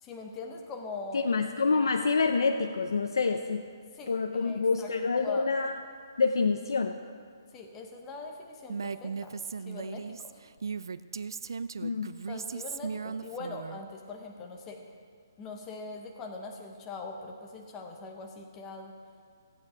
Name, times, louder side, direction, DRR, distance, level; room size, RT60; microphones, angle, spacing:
voice 1, 0.0-1.3 4.0-4.1 4.4-5.5 7.5-9.4 9.7-10.1 12.3-14.8 15.4-18.9, left 3 dB, 10° left, 2 dB, 0.7 m, -42 dB
voice 2, 1.1-3.6 4.1-5.8 6.2-7.0 11.8-12.1, left 4 dB, 90° left, 5 dB, 0.6 m, -27 dB
Female speech woman speaking, 8.7-13.8, right 5 dB, 75° right, 0.4 m, -37 dB
15.0 x 8.7 x 4.9 m, 2.1 s
hypercardioid pair, 175°, 2 cm